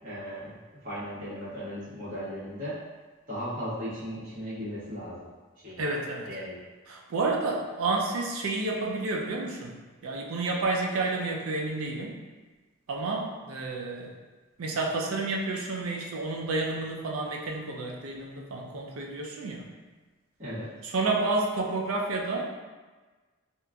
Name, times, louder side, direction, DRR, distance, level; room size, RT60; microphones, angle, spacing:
voice 1, 0.0-0.5 0.8-2.8 3.3-5.3 5.6-5.8 6.2-6.6 20.4-20.7, equal, 40° right, -12 dB, 1.3 m, -36 dB
voice 2, 5.8-6.3 6.9-9.8 10.0-12.2 12.9-14.1 14.6-19.7 20.8-22.5, right 3 dB, 85° right, 0 dB, 0.4 m, -30 dB
2.9 x 2.5 x 2.3 m, 1.3 s
head